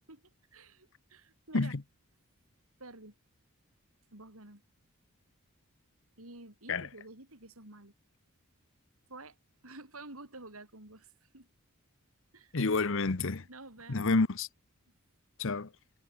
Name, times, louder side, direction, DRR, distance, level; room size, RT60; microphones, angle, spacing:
voice 1, 0.1-1.7 2.8-3.1 4.1-4.6 6.2-7.9 9.1-9.4 9.6-11.5 12.3-12.6 13.5-14.2, right 2 dB, 70° right, 5.2 m, -50 dB
voice 2, 12.5-13.5 13.9-14.5 15.4-15.7, left 3 dB, 60° left, 0.9 m, -29 dB
head